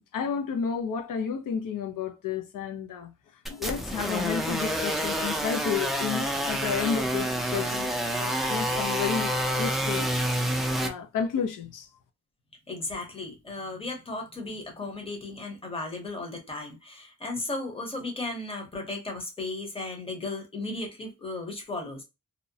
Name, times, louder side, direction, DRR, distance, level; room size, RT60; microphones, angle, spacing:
voice 1, 0.1-3.1 3.5-7.9 8.2-10.1 10.8-11.9, left 7 dB, 85° left, 0.5 m, -31 dB
sound 1, 3.5-10.9, equal, ahead, 0.3 m, -28 dB
voice 2, 12.7-22.0, left 2 dB, 20° left, 0.7 m, -35 dB
2.7 x 2.0 x 2.6 m
wide cardioid pair, 160°, 31 cm